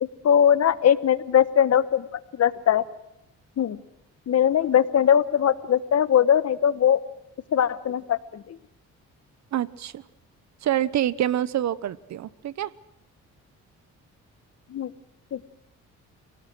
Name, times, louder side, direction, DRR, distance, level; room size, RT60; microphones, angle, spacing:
voice 1, 0.0-2.0 2.3-2.8 3.6-3.8 4.3-7.0 7.5-8.6 14.7-14.9 15.3-15.4, left 9 dB, 55° left, 15 dB, 1.3 m, -21 dB
voice 2, 9.5-10.0 10.6-12.7, right 11 dB, 65° right, 18 dB, 1.1 m, -26 dB
29.5 x 18.5 x 6.3 m, 0.84 s
cardioid pair, 90°, 30 cm